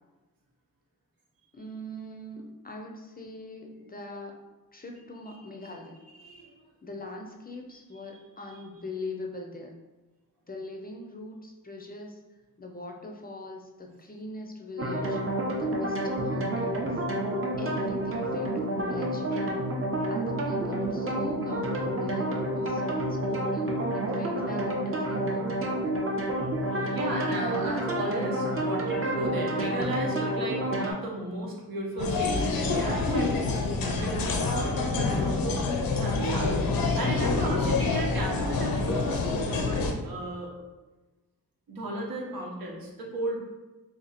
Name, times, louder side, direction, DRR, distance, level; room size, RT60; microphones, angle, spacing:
voice 1, 1.5-4.4 4.7-6.0 6.8-9.8 10.5-12.2 12.6-15.2 15.5-17.0 17.6-19.6 20.1-25.6, left 2 dB, 25° left, 2 dB, 0.5 m, -41 dB
voice 2, 6.2-6.5 19.3-19.4 26.2-40.5 41.7-43.4, right 2 dB, 80° right, -1 dB, 0.9 m, -35 dB
sound 1, 14.8-30.9, right 1 dB, 40° right, 0.7 m, -29 dB
sound 2, 32.0-39.9, left 3 dB, 75° left, 0.6 m, -27 dB
2.8 x 2.6 x 4.0 m, 1.2 s
cardioid pair, 85°, 35 cm